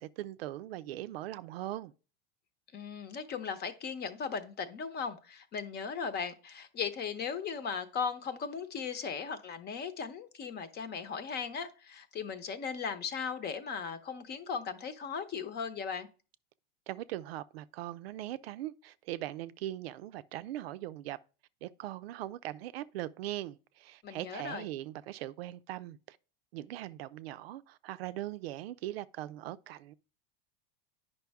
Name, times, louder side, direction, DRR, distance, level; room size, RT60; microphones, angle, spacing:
voice 1, 0.0-1.9 16.9-21.2 21.6-26.2 26.5-29.9, right 14 dB, 85° right, 0.5 m, -40 dB
voice 2, 2.7-16.1 24.0-24.6, left 6 dB, 35° left, 0.9 m, -37 dB
9.2 x 5.4 x 3.5 m
supercardioid pair, 120°, 30 cm